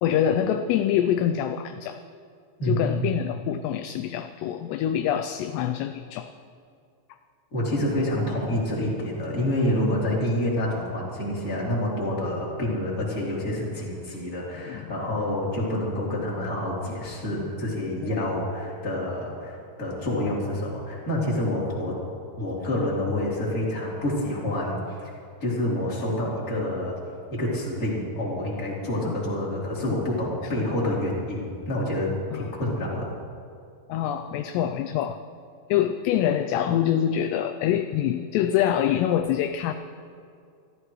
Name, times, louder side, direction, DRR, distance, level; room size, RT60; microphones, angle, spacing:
voice 1, 0.0-2.0 2.6-6.3 14.7-14.9 18.1-18.3 29.0-29.2 32.3-32.5 33.9-35.2 35.7-39.7, left 10 dB, 80° left, 8 dB, 2.6 m, -25 dB
voice 2, 2.6-3.1 7.5-21.9 22.4-25.1 25.4-26.9 27.3-33.1, left 1 dB, 20° left, -6 dB, 3.5 m, -27 dB
26.5 x 14.0 x 3.2 m, 2.4 s
omnidirectional pair, 5.2 m